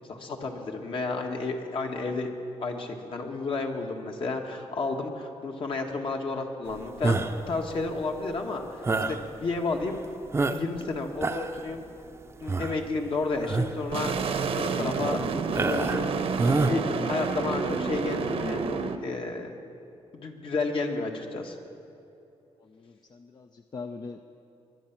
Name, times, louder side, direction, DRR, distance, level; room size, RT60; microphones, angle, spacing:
voice 1, 0.1-2.3 2.6-7.2 7.5-10.0 10.5-11.9 12.4-14.2 14.5-15.2 15.6-18.7 19.0-19.6 20.1-21.6, left 3 dB, 55° left, 2 dB, 1.7 m, -31 dB
sound 1, 7.0-7.5 8.8-9.2 9.8-9.9 10.3-10.8 11.1-11.6 12.5-12.8 13.4-13.8 14.3-14.5 15.5-16.1 16.4-16.8, right 3 dB, 25° right, 0.7 m, -27 dB
sound 2, 13.9-19.0, right 5 dB, 65° right, 1.0 m, -29 dB
voice 2, 22.6-24.2, left 4 dB, 40° left, 6 dB, 0.6 m, -42 dB
20.5 x 11.0 x 6.0 m, 2.8 s
cardioid pair, 120°, 11 cm